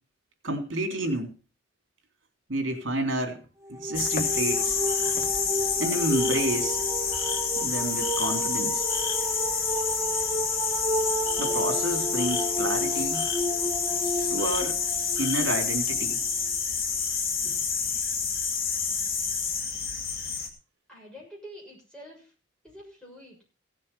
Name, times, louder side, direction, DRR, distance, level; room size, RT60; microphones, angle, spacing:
voice 1, 0.4-1.3 2.5-3.4 3.7-5.2 5.8-6.8 7.6-8.8 11.4-13.2 14.3-14.8 15.2-16.2 17.4-17.5, right 1 dB, 70° right, 5 dB, 3.4 m, -30 dB
sound 1, 3.6-16.5, equal, 15° right, 1.3 m, -32 dB
sound 2, 3.9-20.5, left 5 dB, 45° left, 2.4 m, -28 dB
voice 2, 20.9-22.3 22.6-23.4, equal, 5° left, -3 dB, 6.7 m, -46 dB
16.5 x 7.5 x 5.5 m, 0.37 s
head